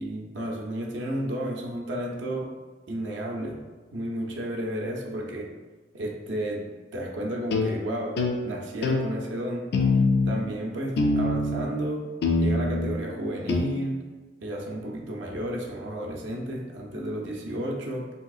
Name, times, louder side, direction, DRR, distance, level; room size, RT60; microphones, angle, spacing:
voice 1, 0.0-2.5 2.9-3.6 3.9-5.5 5.9-9.7 10.3-12.0 12.4-14.0 14.4-18.1, right 1 dB, 80° right, 0 dB, 0.5 m, -32 dB
sound 1, 7.5-7.7 8.2-8.4 8.8-9.0 9.7-10.4 11.0-11.7 12.2-13.0 13.5-13.6, left 3 dB, 60° left, 0.4 m, -23 dB
3.3 x 2.8 x 2.3 m, 1.3 s
head